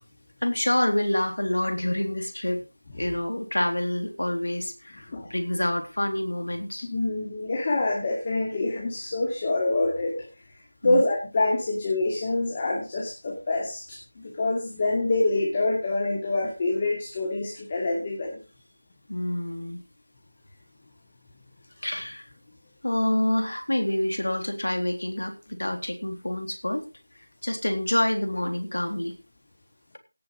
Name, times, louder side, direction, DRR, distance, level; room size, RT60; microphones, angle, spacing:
voice 1, 0.4-2.6 2.9-6.9 10.8-11.0 19.1-19.8 21.8-22.2 22.8-26.9 27.4-29.1, left 1 dB, 80° left, 5 dB, 3.6 m, -27 dB
voice 2, 6.9-10.1 10.8-18.4, left 2 dB, 25° left, -1 dB, 2.6 m, -26 dB
17.5 x 6.3 x 5.0 m, 0.31 s
figure-of-eight pair, 175°, 0 cm